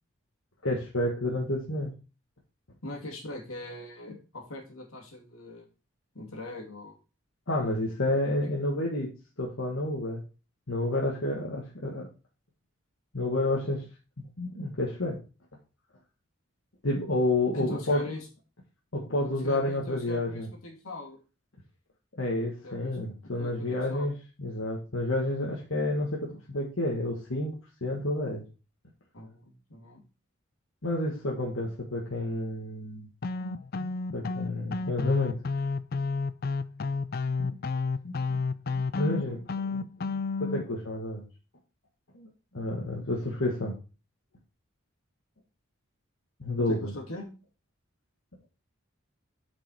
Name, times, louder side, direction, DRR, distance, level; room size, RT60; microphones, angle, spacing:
voice 1, 0.6-1.9 7.5-9.1 9.4-10.2 10.7-12.1 13.1-13.8 14.2-15.2 16.8-18.0 18.9-20.5 22.2-28.4 30.8-33.1 33.4-33.6 34.1-35.4 37.4-37.6 38.0-38.4 38.7-41.2 42.1-42.3 42.5-43.8 46.4-46.9, left 1 dB, 70° left, -2 dB, 1.6 m, -30 dB
voice 2, 2.8-5.7 6.1-7.0 8.4-8.5 17.5-18.3 19.2-21.2 22.6-23.0 23.4-24.1 26.3-26.4 29.1-30.0 46.6-47.3, left 1 dB, 85° left, 1 dB, 2.7 m, -41 dB
sound 1, 33.2-40.6, left 4 dB, 45° left, 0.4 m, -31 dB
7.7 x 5.4 x 4.3 m, 0.33 s
head